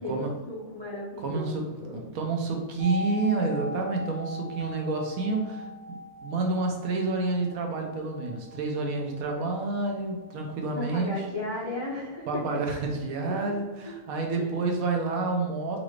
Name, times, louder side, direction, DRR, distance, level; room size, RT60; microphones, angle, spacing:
voice 1, 0.0-2.0 10.8-12.6 13.8-13.9 14.3-14.5, left 2 dB, 35° left, -6 dB, 0.4 m, -35 dB
voice 2, 1.2-1.6 1.9-11.2 12.3-15.8, right 3 dB, 70° right, 2 dB, 1.0 m, -29 dB
sound 1, 2.8-12.5 12.8-12.9, left 1 dB, 60° left, 0.9 m, -41 dB
4.0 x 2.5 x 3.2 m, 1.2 s
omnidirectional pair, 1.7 m